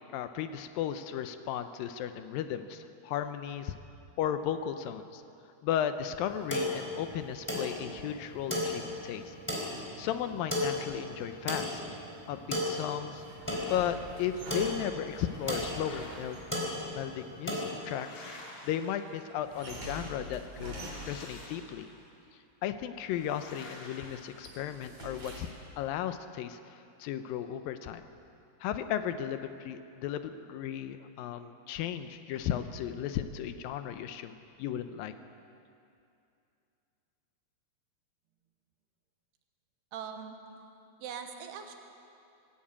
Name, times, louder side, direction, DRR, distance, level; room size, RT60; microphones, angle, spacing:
voice 1, 0.1-3.8 4.2-5.2 5.6-9.3 10.0-11.8 12.3-16.4 16.9-18.2 18.6-20.8 21.1-21.9 22.6-25.5 25.8-28.1 28.6-35.1, left 10 dB, 80° left, 9 dB, 2.1 m, -35 dB
sound 1, 6.2-17.7, left 1 dB, 5° left, 3.4 m, -35 dB
sound 2, 13.1-16.6 19.4-21.4 22.9-23.5 23.9-25.8, equal, 40° right, 4.4 m, -45 dB
sound 3, 15.3-16.6 17.4-19.6 20.6-22.1 23.1-25.0, left 2 dB, 45° left, 3.8 m, -50 dB
voice 2, 39.9-40.4 41.0-41.7, right 7 dB, 80° right, 5 dB, 3.3 m, -41 dB
20.0 x 16.0 x 8.7 m, 2.6 s
omnidirectional pair, 4.8 m